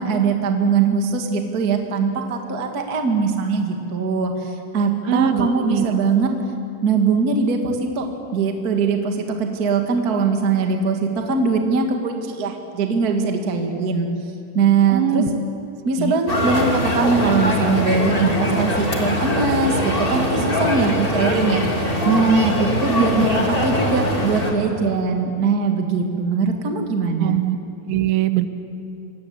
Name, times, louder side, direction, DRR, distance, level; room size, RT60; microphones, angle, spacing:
voice 1, 0.0-6.3 6.8-8.0 8.3-14.1 14.5-15.2 15.8-21.6 22.0-23.3 23.6-27.4, right 4 dB, 55° right, 3 dB, 1.0 m, -21 dB
voice 2, 5.1-5.9 14.9-15.3 16.0-16.2 23.0-23.5 27.2-27.6 27.8-28.5, right 13 dB, 80° right, 10 dB, 3.3 m, -22 dB
sound 1, 16.3-24.5, left 1 dB, 30° left, 1.0 m, -22 dB
26.5 x 19.0 x 8.2 m, 2.8 s
omnidirectional pair, 5.5 m